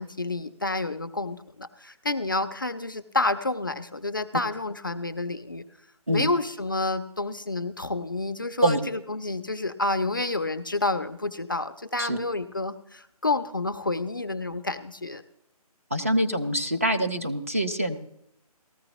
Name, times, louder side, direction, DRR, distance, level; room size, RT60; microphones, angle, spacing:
voice 1, 0.0-5.6 6.1-15.2, left 2 dB, 35° left, 9 dB, 0.4 m, -29 dB
voice 2, 15.9-18.0, right 1 dB, 20° right, 4 dB, 0.5 m, -25 dB
18.5 x 14.0 x 2.9 m, 0.77 s
hypercardioid pair, 175°, 20 cm